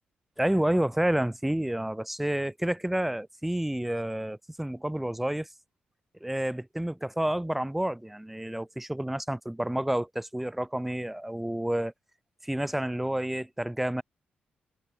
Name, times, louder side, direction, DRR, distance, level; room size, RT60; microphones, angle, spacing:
voice 1, 0.4-5.5 6.2-11.9 12.4-14.0, right 1 dB, 5° right, 0.8 m, -29 dB
cardioid pair, 125°, 3 cm